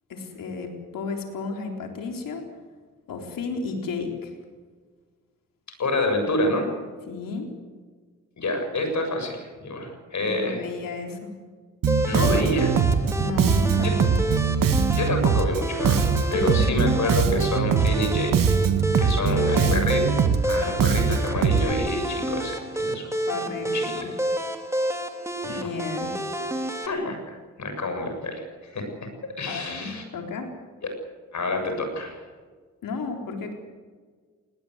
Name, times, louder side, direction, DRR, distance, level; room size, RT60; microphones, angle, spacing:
voice 1, 0.1-2.4 3.1-4.3 7.1-7.5 10.2-11.3 13.2-14.2 16.3-16.8 19.2-19.8 23.3-24.1 25.5-26.1 29.5-30.5 32.8-33.5, left 4 dB, 80° left, 2 dB, 4.0 m, -33 dB
voice 2, 5.8-6.7 8.4-10.6 12.0-12.8 15.0-18.5 19.0-20.0 20.4-23.1 23.7-24.1 25.4-25.8 26.8-29.1 29.4-30.0 30.8-31.0 31.3-32.2, left 2 dB, 60° left, 5 dB, 7.5 m, -28 dB
Bass guitar, 11.8-21.7, right 6 dB, 75° right, 1.9 m, -22 dB
sound 1, 11.9-26.9, right 1 dB, 10° right, 3.4 m, -30 dB
20.0 x 19.0 x 8.1 m, 1.5 s
supercardioid pair, 50°, 33 cm